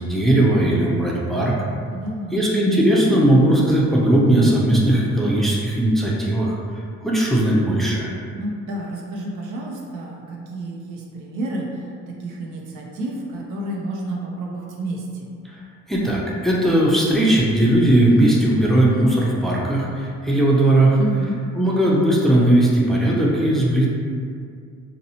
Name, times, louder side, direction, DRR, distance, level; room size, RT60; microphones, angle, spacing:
voice 1, 0.0-1.6 2.3-8.1 15.4-15.6 15.9-21.0 21.5-23.9, right 1 dB, ahead, -4 dB, 0.4 m, -18 dB
voice 2, 1.9-2.4 8.3-15.3 21.0-21.4, right 1 dB, 90° right, -1 dB, 0.5 m, -30 dB
2.6 x 2.0 x 2.7 m, 2.2 s
cardioid pair, 90°, 30 cm